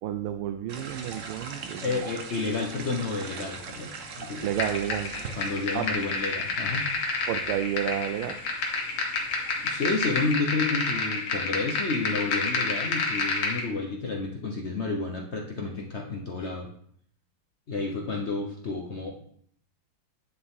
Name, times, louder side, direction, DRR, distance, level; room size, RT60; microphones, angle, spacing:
voice 1, 0.0-2.0 4.4-5.1 5.7-5.9 7.3-8.4, right 10 dB, 85° right, 8 dB, 1.5 m, -31 dB
sound 1, 0.7-10.3, right 4 dB, 55° right, 0.9 m, -42 dB
voice 2, 1.8-4.5 5.3-6.9 9.6-16.7 17.7-19.1, left 3 dB, 55° left, 0 dB, 0.7 m, -31 dB
sound 2, 4.6-13.6, left 3 dB, 75° left, 2.1 m, -29 dB
9.6 x 6.8 x 3.7 m, 0.63 s
omnidirectional pair, 2.3 m